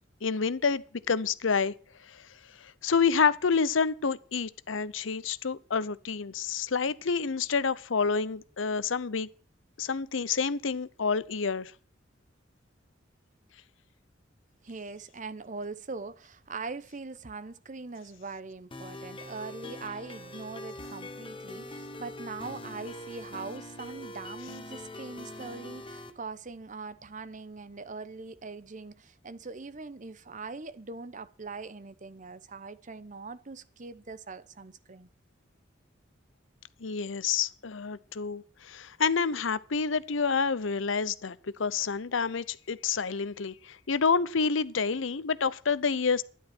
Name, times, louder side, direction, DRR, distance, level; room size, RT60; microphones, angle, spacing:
voice 1, 0.2-1.7 2.0-2.3 2.6-9.3 9.8-11.7 36.8-46.2, left 5 dB, 85° left, 0.7 m, -28 dB
voice 2, 14.6-35.1, right 4 dB, 40° right, 0.8 m, -41 dB
sound 1, 18.7-26.1, left 1 dB, 25° left, 1.5 m, -43 dB
12.5 x 11.0 x 6.1 m
head